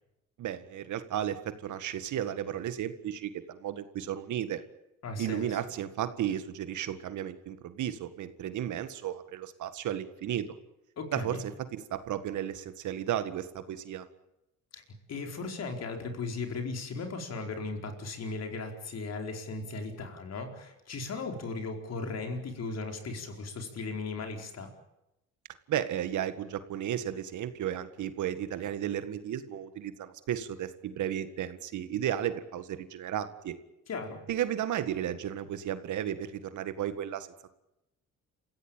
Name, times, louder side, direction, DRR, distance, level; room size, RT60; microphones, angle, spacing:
voice 1, 0.4-4.6 5.2-10.5 11.1-14.1 25.7-33.6 34.3-37.5, right 10 dB, 75° right, 11 dB, 1.8 m, -34 dB
voice 2, 5.0-5.5 11.0-11.4 14.7-14.8 15.1-24.7 33.9-34.2, left 3 dB, 55° left, 4 dB, 4.7 m, -37 dB
28.0 x 15.5 x 9.0 m, 0.89 s
cardioid pair, 90°, 30 cm